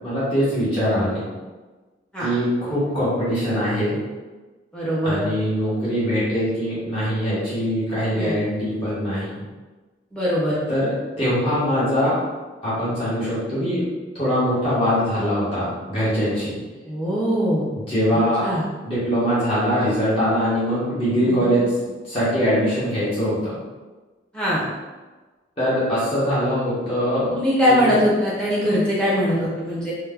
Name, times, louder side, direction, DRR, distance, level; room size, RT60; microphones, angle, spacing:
voice 1, 0.0-1.2 2.2-3.9 5.0-9.4 10.7-12.2 12.6-13.8 14.1-16.6 17.9-18.5 18.8-21.6 22.0-23.6 25.6-27.3 27.7-27.9, equal, 30° left, -11 dB, 1.3 m, -22 dB
voice 2, 4.7-5.2 8.1-8.3 10.1-10.6 16.9-17.7 18.4-18.6 21.2-21.6 24.3-24.7 27.3-29.9, equal, 5° left, -8 dB, 0.9 m, -21 dB
3.1 x 2.2 x 3.6 m, 1.3 s
head